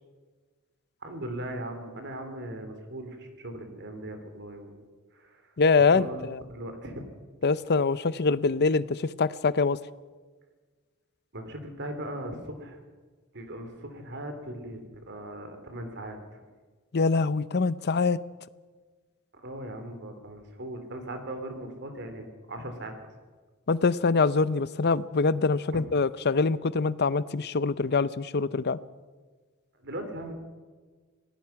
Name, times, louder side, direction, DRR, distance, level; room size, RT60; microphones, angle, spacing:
voice 1, 1.0-4.8 5.1-5.5 5.8-7.0 11.3-12.8 13.3-16.4 19.4-22.9 25.7-25.8 29.8-30.3, right 1 dB, 55° right, 6 dB, 3.4 m, -39 dB
voice 2, 5.6-6.4 7.4-9.8 16.9-18.2 23.7-28.8, left 4 dB, 50° left, 17 dB, 0.6 m, -24 dB
25.5 x 18.0 x 5.9 m, 1.4 s
head